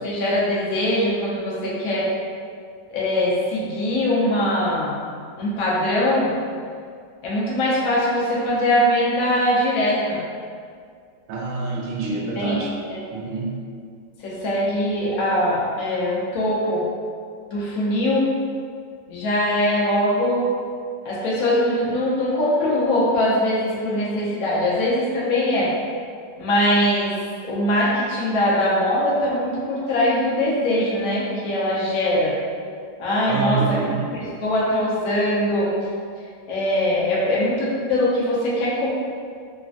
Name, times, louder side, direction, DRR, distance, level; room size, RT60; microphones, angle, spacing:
voice 1, 0.0-2.1 2.9-5.0 5.4-6.3 7.2-10.2 12.4-12.6 14.2-16.8 17.5-18.3 19.1-20.4 21.0-25.7 26.4-27.1 27.4-32.3 33.0-33.8 34.1-35.7 36.5-38.9, left 1 dB, 65° left, -6 dB, 0.9 m, -22 dB
voice 2, 11.3-12.8 13.1-13.6 33.3-34.0, right 4 dB, 75° right, -3 dB, 0.8 m, -26 dB
3.2 x 2.0 x 2.4 m, 2.2 s
omnidirectional pair, 1.9 m